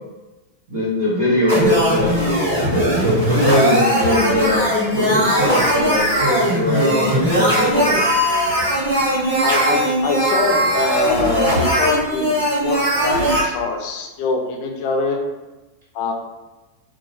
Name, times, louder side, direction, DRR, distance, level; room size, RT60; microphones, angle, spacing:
voice 1, 0.7-2.2 2.7-8.0, left 1 dB, 55° right, -8 dB, 1.5 m, -20 dB
sound 1, 1.5-13.4, equal, 75° right, 1.1 m, -19 dB
voice 2, 9.4-12.4 12.6-15.2 15.9-16.1, left 4 dB, 45° left, 1 dB, 0.4 m, -23 dB
2.7 x 2.2 x 2.9 m, 1.1 s
figure-of-eight pair, 90°, 0 cm